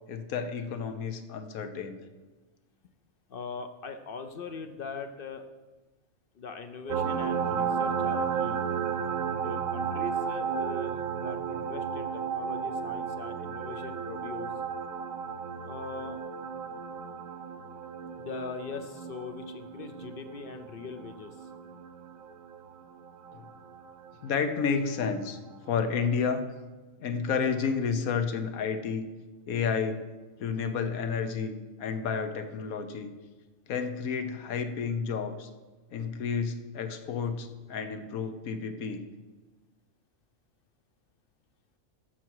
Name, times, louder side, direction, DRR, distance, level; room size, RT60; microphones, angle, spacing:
voice 1, 0.1-2.0 23.3-23.5 24.2-25.4 25.7-26.4 27.0-29.1 29.5-30.0 30.4-33.1 33.7-35.5 35.9-39.0, left 6 dB, 85° left, 8 dB, 1.3 m, -31 dB
voice 2, 3.3-5.5 6.3-8.6 9.4-11.0 11.2-14.5 15.6-16.2 18.2-21.5, left 5 dB, 55° left, 8 dB, 0.6 m, -41 dB
sound 1, 6.9-24.1 25.7-25.8, right 6 dB, 75° right, 1.1 m, -34 dB
14.5 x 5.9 x 4.7 m, 1.2 s
omnidirectional pair, 1.4 m